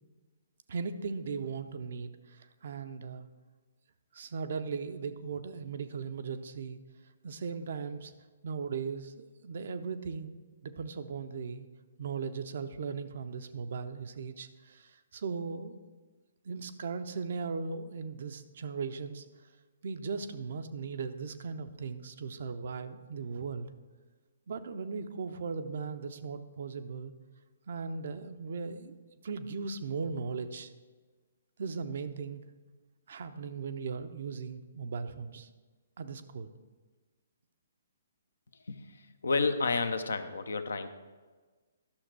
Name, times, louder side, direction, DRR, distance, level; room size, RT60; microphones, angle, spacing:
voice 1, 0.7-3.3 4.1-6.8 7.2-8.1 8.4-11.7 12.0-15.7 16.4-19.2 19.8-23.7 24.5-27.1 27.7-28.9 29.2-30.7 31.6-32.4 33.1-35.5 36.0-36.5, right 5 dB, 55° right, 9 dB, 0.6 m, -38 dB
voice 2, 39.2-40.9, left 4 dB, 70° left, 9 dB, 0.7 m, -30 dB
11.5 x 6.5 x 4.6 m, 1.4 s
figure-of-eight pair, 130°, 0 cm